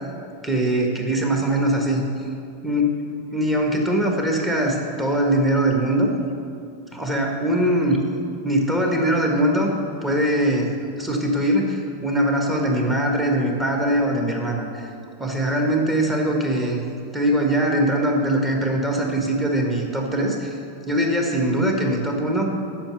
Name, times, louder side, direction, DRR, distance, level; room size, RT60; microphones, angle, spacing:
voice 1, 0.4-2.3 2.6-2.9 3.3-6.2 6.9-8.0 8.4-9.7 10.0-10.7 11.0-14.9 15.2-16.8 17.1-20.5 20.9-22.5, right 1 dB, 10° right, 0 dB, 1.5 m, -22 dB
8.8 x 5.8 x 6.8 m, 2.5 s
figure-of-eight pair, 90°, 0 cm